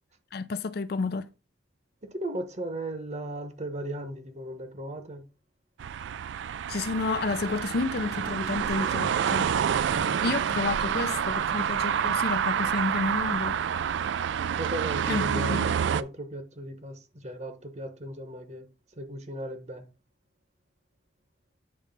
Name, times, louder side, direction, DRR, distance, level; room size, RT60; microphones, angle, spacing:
voice 1, 0.3-1.3 6.7-9.5 10.2-13.6 15.1-15.7, left 3 dB, 50° left, 0.4 m, -30 dB
voice 2, 2.0-5.2 9.9-10.2 14.6-18.7 18.9-19.9, right 1 dB, 35° right, 1.0 m, -37 dB
sound 1, 5.8-16.0, right 8 dB, 65° right, 0.3 m, -28 dB
8.7 x 3.2 x 5.3 m
head